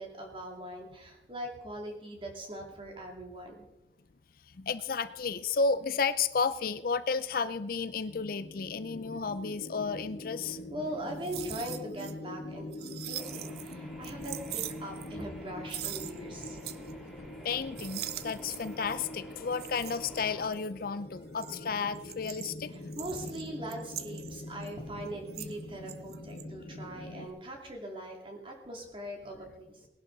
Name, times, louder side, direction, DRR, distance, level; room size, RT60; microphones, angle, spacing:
voice 1, 0.0-3.6 10.5-16.6 22.7-29.9, right 1 dB, 30° right, 1 dB, 2.6 m, -41 dB
voice 2, 4.6-10.6 17.4-22.7, left 5 dB, 55° left, 13 dB, 0.5 m, -32 dB
sound 1, 8.1-27.3, left 2 dB, 80° left, 1.6 m, -44 dB
sound 2, 11.0-12.1 12.4-13.7 14.0-15.4 15.7-16.9 17.2-17.5 17.8-18.8 19.5-20.7 21.2-25.6 25.9-26.4, right 13 dB, 60° right, 0.7 m, -42 dB
sound 3, 13.2-20.5, equal, ahead, 2.0 m, -50 dB
19.5 x 11.5 x 4.0 m, 0.99 s
head